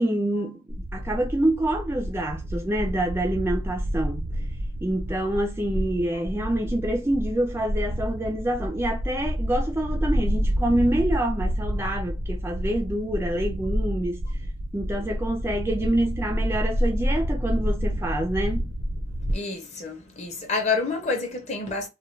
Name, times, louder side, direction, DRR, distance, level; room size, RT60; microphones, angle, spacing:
voice 1, 0.0-4.3 4.8-14.2 14.7-18.7, right 1 dB, 10° right, 0.3 m, -26 dB
sound 1, 0.7-19.3, equal, 80° right, 0.7 m, -29 dB
voice 2, 19.3-21.9, left 4 dB, 35° left, 0.7 m, -28 dB
2.3 x 2.2 x 3.1 m
head